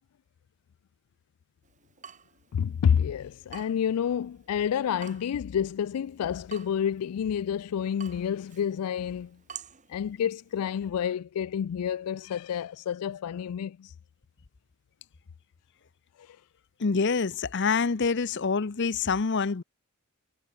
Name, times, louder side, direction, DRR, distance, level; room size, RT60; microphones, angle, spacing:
Water tap faucet / Drip, 1.6-10.9, right 8 dB, 35° right, 4.6 m, -51 dB
voice 1, 2.5-9.4 9.9-13.9 16.2-16.4, left 8 dB, 85° left, 0.3 m, -29 dB
voice 2, 16.8-19.6, left 5 dB, 55° left, 0.7 m, -26 dB
head